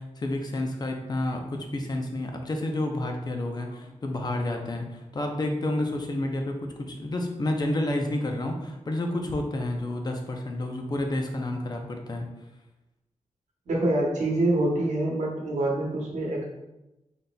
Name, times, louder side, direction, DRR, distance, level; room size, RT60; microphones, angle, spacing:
voice 1, 0.0-12.3, left 1 dB, 35° left, 3 dB, 0.6 m, -30 dB
voice 2, 13.7-16.4, right 1 dB, 80° right, -2 dB, 0.9 m, -25 dB
4.0 x 3.8 x 2.3 m, 0.97 s
wide cardioid pair, 125°, 12 cm